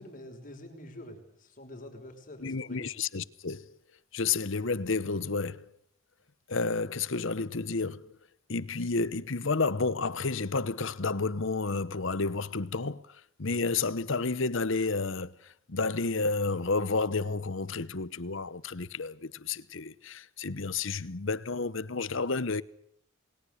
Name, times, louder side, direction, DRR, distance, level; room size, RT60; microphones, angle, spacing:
voice 1, 0.0-2.9, left 1 dB, 40° left, 5.4 m, -46 dB
voice 2, 2.4-3.7 4.1-5.6 6.5-8.1 8.5-13.0 13.4-15.3 15.7-22.6, left 4 dB, 65° left, 1.0 m, -31 dB
28.5 x 21.0 x 6.6 m
head